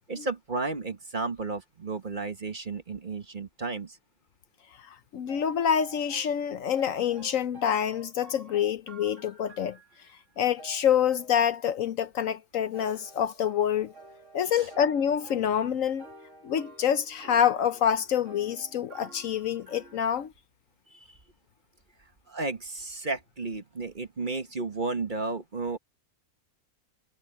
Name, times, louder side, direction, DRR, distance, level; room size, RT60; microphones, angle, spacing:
voice 1, 0.1-4.0 14.4-14.7 20.9-21.2 22.3-25.8, right 3 dB, 35° right, 1.3 m, -33 dB
voice 2, 4.9-9.8 10.4-13.9 14.3-16.1 16.4-20.3, left 9 dB, 65° left, 1.0 m, -27 dB
sound 1, 5.3-6.5 6.8-10.2 10.6-11.7 12.7-20.3, right 3 dB, 50° right, 3.0 m, -51 dB
omnidirectional pair, 1.6 m